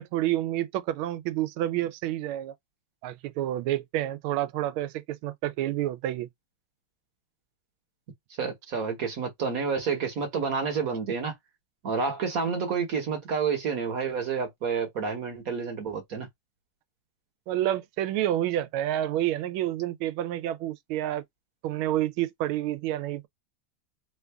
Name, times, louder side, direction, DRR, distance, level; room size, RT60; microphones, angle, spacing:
voice 1, 0.0-2.5 3.0-6.3 17.5-21.2 21.6-23.3, right 13 dB, 85° right, 1.4 m, -29 dB
voice 2, 8.4-11.3 11.8-16.3, right 5 dB, 50° right, 1.3 m, -29 dB
3.6 x 2.5 x 3.3 m
omnidirectional pair, 2.2 m